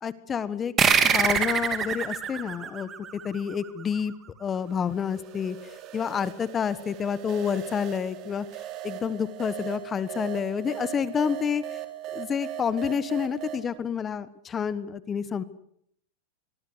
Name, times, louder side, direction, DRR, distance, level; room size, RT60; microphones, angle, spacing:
voice 1, 0.0-0.7 1.0-2.9 3.2-4.1 4.4-8.5 8.8-11.8 12.1-15.4, left 7 dB, 20° left, 16 dB, 1.3 m, -29 dB
sound 1, 0.8-3.8, right 7 dB, 20° right, 2.7 m, -24 dB
sound 2, 4.6-13.7, right 12 dB, 40° right, 4.0 m, -39 dB
24.0 x 23.0 x 8.0 m, 0.70 s
supercardioid pair, 150°, 0 cm